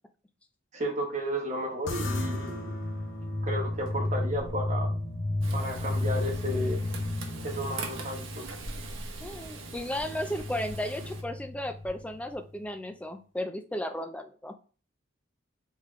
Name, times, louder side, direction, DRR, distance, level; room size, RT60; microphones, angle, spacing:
voice 1, 0.7-2.7 3.4-4.9 5.5-6.8 7.4-8.4, equal, 35° right, 0 dB, 1.1 m, -33 dB
sound 1, 1.9-12.5, left 1 dB, 60° left, 0.7 m, -33 dB
Electric guitar / Strum, 2.0-11.7, equal, 45° left, 1.8 m, -48 dB
Frying (food), 5.4-11.2, right 4 dB, 70° right, 0.8 m, -43 dB
voice 2, 9.2-14.5, left 1 dB, 5° left, 7 dB, 0.3 m, -34 dB
3.7 x 3.2 x 3.1 m, 0.39 s
head